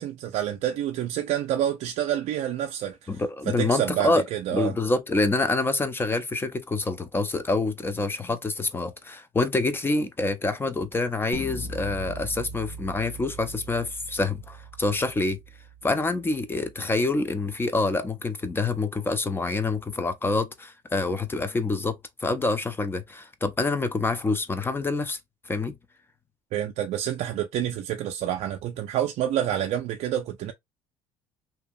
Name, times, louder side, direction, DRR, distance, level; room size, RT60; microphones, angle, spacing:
voice 1, 0.0-3.1 3.5-4.7 26.5-30.5, right 11 dB, 70° right, 0.4 m, -28 dB
voice 2, 3.1-4.2 4.5-15.4 15.8-21.9 22.2-25.2 25.5-25.8, left 3 dB, 20° left, 0.5 m, -26 dB
sound 1, 11.3-17.3, right 1 dB, 60° left, 0.8 m, -40 dB
2.8 x 2.3 x 2.5 m
cardioid pair, 100°, 12 cm